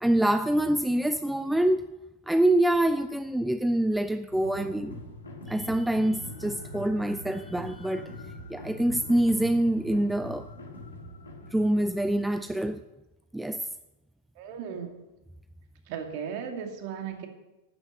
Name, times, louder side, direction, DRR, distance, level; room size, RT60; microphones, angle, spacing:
voice 1, 0.0-1.8 2.3-5.0 5.5-8.1 8.5-10.5 11.5-12.8 13.3-13.6, right 1 dB, 5° right, 10 dB, 0.4 m, -25 dB
sound 1, 4.3-12.8, left 1 dB, 75° left, 1.9 m, -43 dB
voice 2, 14.4-14.9 15.9-17.3, right 7 dB, 45° right, 5 dB, 2.2 m, -36 dB
12.0 x 6.3 x 8.7 m, 1.0 s
figure-of-eight pair, 90°, 0 cm